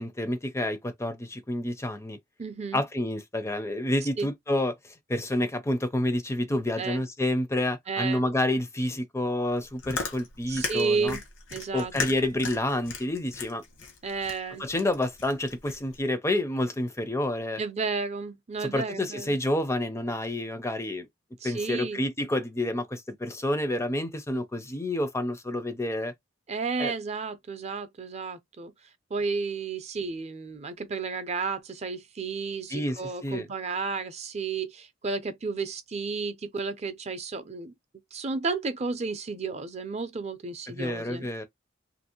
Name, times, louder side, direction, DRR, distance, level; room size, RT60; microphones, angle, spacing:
voice 1, 0.0-2.2 2.7-11.2 11.7-13.6 14.6-17.6 18.6-21.1 21.4-26.1 26.8-26.9 32.7-33.5 40.8-41.4, left 1 dB, 15° left, 0.5 m, -29 dB
voice 2, 2.4-2.8 4.2-4.3 6.8-7.0 7.9-8.3 10.5-11.2 11.5-11.9 14.0-14.7 17.6-19.4 21.4-22.0 26.5-28.7 29.1-37.7 38.1-41.3, right 4 dB, 35° right, 0.5 m, -32 dB
Chewing mastication, 9.5-16.0, left 4 dB, 80° left, 1.1 m, -37 dB
2.9 x 2.6 x 2.8 m
head